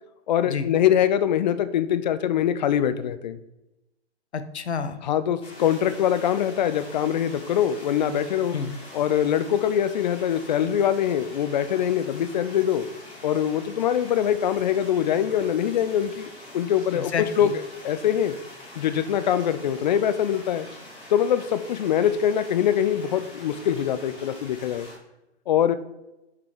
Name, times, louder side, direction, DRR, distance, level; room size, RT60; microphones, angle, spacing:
voice 1, 0.3-3.4 5.0-8.6 8.9-12.9 13.2-18.4 18.8-20.7 21.1-24.9 25.5-25.8, left 9 dB, 40° left, 13 dB, 0.5 m, -23 dB
voice 2, 4.3-5.0 8.5-8.7 16.9-17.5, left 6 dB, 75° left, 10 dB, 0.7 m, -29 dB
sound 1, 5.4-25.0, left 1 dB, 15° left, 2.1 m, -44 dB
6.0 x 5.3 x 3.5 m, 0.94 s
figure-of-eight pair, 115°, 34 cm